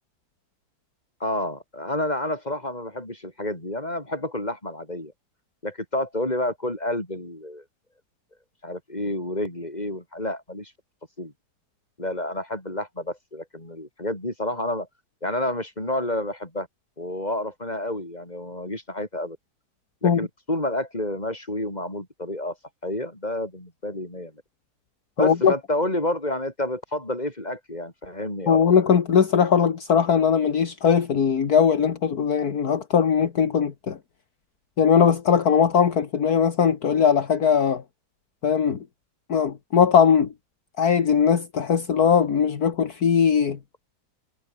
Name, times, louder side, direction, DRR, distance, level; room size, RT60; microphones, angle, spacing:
voice 1, 1.2-5.1 5.6-7.6 8.6-10.7 11.2-11.3 12.0-14.9 15.2-16.7 17.0-19.4 20.0-22.5 22.8-24.3 25.2-28.6, left 1 dB, 25° left, 6.4 m, -29 dB
voice 2, 25.2-25.5 28.5-34.0 34.8-37.8 38.4-38.8 39.3-40.3 40.8-43.6, left 7 dB, 65° left, 2.1 m, -20 dB
omnidirectional pair, 1.8 m